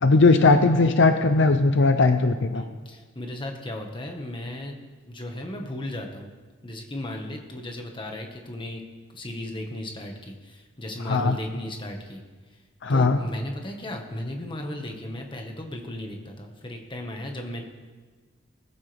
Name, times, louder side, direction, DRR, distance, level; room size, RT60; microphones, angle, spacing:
voice 1, 0.0-2.6 11.1-11.4 12.8-13.2, left 3 dB, 65° left, 8 dB, 0.7 m, -19 dB
voice 2, 2.5-6.3 6.6-8.8 9.1-12.2 12.9-17.6, left 1 dB, 25° left, 2 dB, 1.6 m, -35 dB
19.5 x 14.0 x 3.5 m, 1.4 s
head